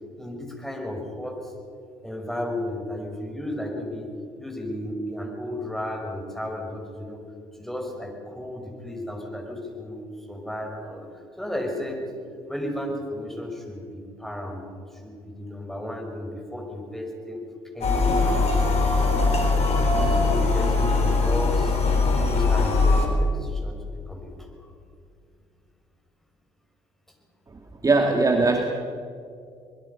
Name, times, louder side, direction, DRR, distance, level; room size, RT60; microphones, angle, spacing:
voice 1, 0.2-1.5 2.0-4.1 4.4-7.2 7.6-12.1 12.5-17.4 17.7-18.9 19.2-19.4 19.9-21.7 22.1-24.5, left 1 dB, ahead, 1 dB, 5.6 m, -33 dB
sound 1, 17.8-23.1, left 3 dB, 50° left, 4.2 m, -21 dB
voice 2, 27.8-28.7, right 3 dB, 25° right, 4 dB, 1.9 m, -20 dB
24.5 x 20.5 x 5.5 m, 2.3 s
hypercardioid pair, 55°, 14 cm